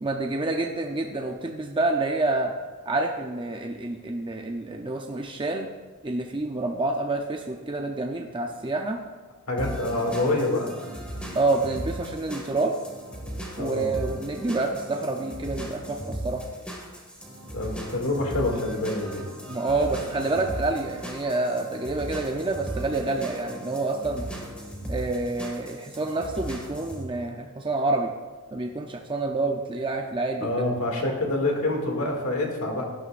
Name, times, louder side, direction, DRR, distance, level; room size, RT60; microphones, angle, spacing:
voice 1, 0.0-2.5 2.9-5.7 6.0-9.0 11.3-12.7 13.6-16.5 19.5-24.3 24.9-28.1 28.5-30.7, right 2 dB, 20° right, 2 dB, 0.6 m, -28 dB
voice 2, 9.5-10.7 13.6-13.9 17.5-19.2 30.4-32.8, left 2 dB, 70° left, 0 dB, 2.3 m, -26 dB
sound 1, 9.6-27.0, right 1 dB, 5° left, 1.9 m, -37 dB
17.0 x 11.0 x 2.5 m, 1.3 s
head